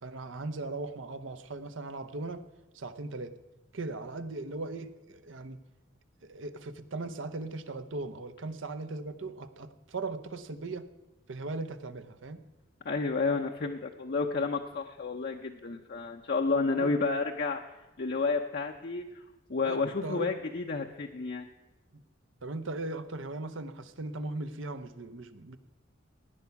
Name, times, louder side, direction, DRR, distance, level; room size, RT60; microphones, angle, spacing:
voice 1, 0.0-2.4 2.7-3.3 3.7-5.6 6.2-10.9 11.3-12.4 16.8-17.0 19.6-20.3 22.4-25.6, right 2 dB, 75° right, 11 dB, 0.8 m, -38 dB
voice 2, 12.8-17.6 18.0-19.2 19.5-21.5, left 4 dB, 55° left, 2 dB, 0.7 m, -31 dB
16.5 x 9.5 x 5.8 m, 1.1 s
head